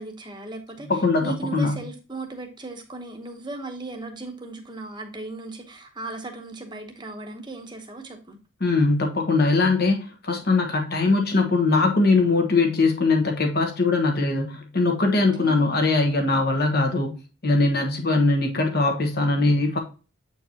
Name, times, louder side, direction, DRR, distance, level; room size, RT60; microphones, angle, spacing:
voice 1, 0.0-8.4 15.1-15.8 16.1-16.3, right 3 dB, 20° right, 0.9 m, -37 dB
voice 2, 0.9-1.8 8.6-17.1 17.4-19.8, left 3 dB, 50° left, 1.3 m, -21 dB
7.5 x 4.5 x 2.8 m
head